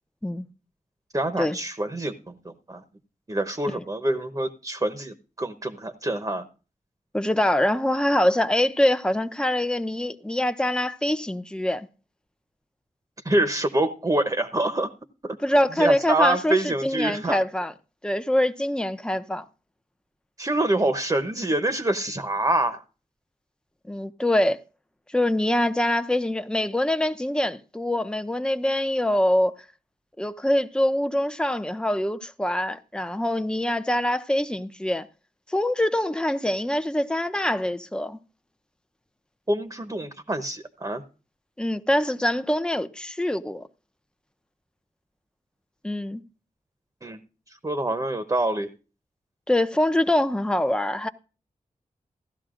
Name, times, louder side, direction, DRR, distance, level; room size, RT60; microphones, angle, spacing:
voice 1, 1.1-2.8 3.3-6.5 13.2-14.9 15.2-17.4 20.4-22.8 39.5-41.0 47.0-47.2 47.5-48.7, right 1 dB, 25° right, 1.0 m, -26 dB
voice 2, 7.1-11.9 15.4-17.7 18.0-19.4 23.9-24.6 25.1-29.6 30.2-35.1 35.5-38.2 41.6-43.7 45.8-46.2 49.5-51.1, left 1 dB, 5° left, 0.7 m, -24 dB
15.5 x 12.0 x 2.5 m
cardioid pair, 55°, 14 cm